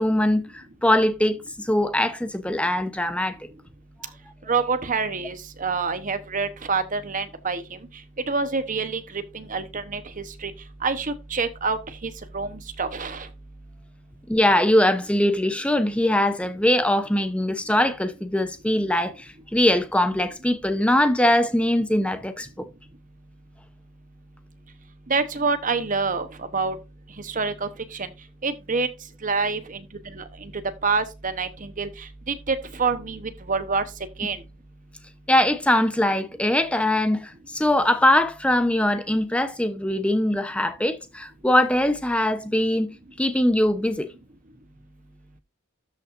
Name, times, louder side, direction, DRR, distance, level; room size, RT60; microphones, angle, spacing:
voice 1, 0.0-3.5 14.3-22.7 35.3-42.9 43.2-44.1, left 1 dB, 5° left, 0.8 m, -22 dB
voice 2, 4.5-7.6 8.3-10.5 10.8-13.3 25.1-26.8 27.2-28.1 28.4-28.9 29.2-29.8 30.1-30.5 30.8-33.8 34.2-34.4, right 4 dB, 35° right, 0.9 m, -27 dB
13.0 x 5.7 x 2.6 m
head